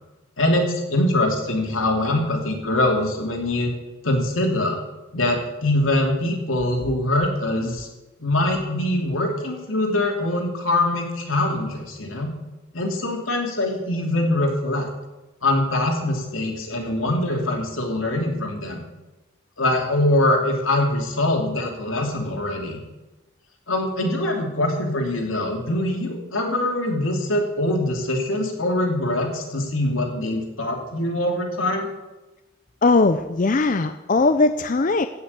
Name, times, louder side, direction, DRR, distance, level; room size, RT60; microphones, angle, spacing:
voice 1, 0.4-3.7 4.0-4.8 5.1-7.9 8.2-12.3 12.7-14.9 15.4-18.8 19.6-22.8 23.7-31.9, left 1 dB, 80° left, 2 dB, 2.8 m, -23 dB
voice 2, 32.8-35.1, left 3 dB, 40° left, 9 dB, 0.5 m, -19 dB
15.5 x 6.3 x 8.2 m, 1.1 s
head